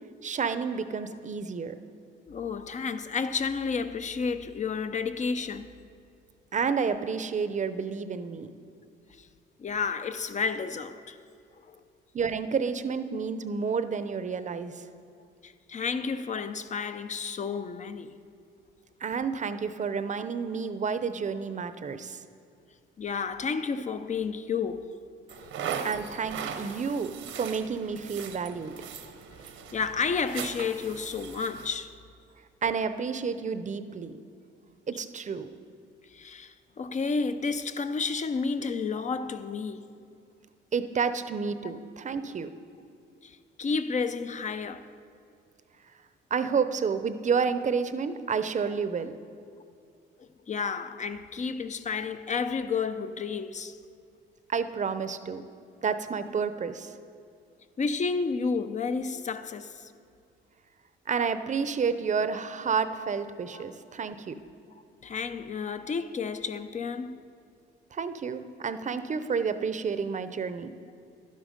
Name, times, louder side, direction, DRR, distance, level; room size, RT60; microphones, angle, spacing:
voice 1, 0.2-1.7 6.5-8.5 12.1-14.7 19.0-22.2 25.8-28.7 32.6-34.1 34.9-35.5 40.7-42.5 46.3-49.2 54.5-55.4 55.8-56.9 61.1-64.4 67.9-70.7, right 5 dB, 40° right, 0.6 m, -30 dB
voice 2, 2.3-5.7 9.2-9.3 9.6-11.2 11.7-11.8 15.4-18.1 23.0-25.0 25.4-25.9 29.7-31.9 36.1-39.9 41.6-41.8 43.2-44.9 50.2-53.8 57.8-59.9 63.5-63.6 65.0-67.2, left 5 dB, 35° left, 0.6 m, -31 dB
sound 1, 25.3-31.8, right 7 dB, 80° right, 1.0 m, -39 dB
11.5 x 10.5 x 5.2 m
cardioid pair, 90°, 20 cm